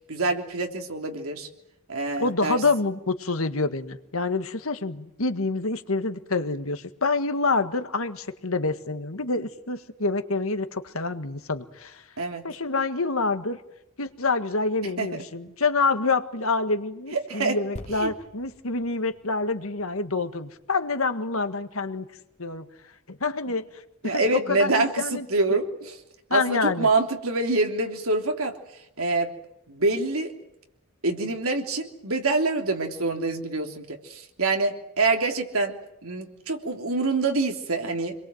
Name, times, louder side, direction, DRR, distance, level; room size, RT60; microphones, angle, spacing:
voice 1, 0.1-1.5 1.9-2.6 12.2-12.5 14.8-15.1 17.1-17.6 18.0-18.1 24.0-25.9 26.3-28.5 29.0-29.3 29.7-30.3 31.0-38.1, right 3 dB, 75° right, 3 dB, 3.3 m, -26 dB
voice 2, 2.2-12.0 12.4-13.6 14.0-22.1 22.4-22.7 23.1-25.2 26.3-26.9, left 3 dB, 70° left, 9 dB, 1.7 m, -27 dB
sound 1, 17.8-21.3 22.0-22.1, equal, 30° left, 3.1 m, -46 dB
27.5 x 22.0 x 7.9 m, 0.86 s
head